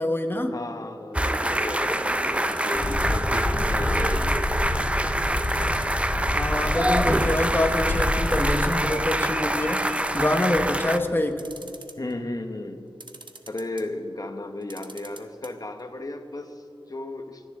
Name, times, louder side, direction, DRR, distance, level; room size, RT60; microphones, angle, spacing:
voice 1, 0.0-0.6 6.3-11.4, left 1 dB, 25° left, 5 dB, 1.2 m, -26 dB
voice 2, 0.5-4.5 12.0-12.8 13.5-17.4, left 2 dB, 45° left, 5 dB, 1.2 m, -35 dB
sound 1, 1.1-11.0, right 1 dB, 15° right, 0.5 m, -25 dB
sound 2, 2.5-3.2 3.9-4.9 5.4-6.1 6.4-6.5 6.8-7.7 8.0-8.1 8.3-8.9 9.7-10.6 11.3-12.1 13.0-13.9 14.6-15.5 15.8-15.9 16.1-16.2, right 3 dB, 60° right, 0.9 m, -44 dB
sound 3, 2.7-8.7, left 2 dB, 75° left, 1.8 m, -28 dB
28.0 x 10.0 x 3.7 m, 2.6 s
wide cardioid pair, 70°, 9 cm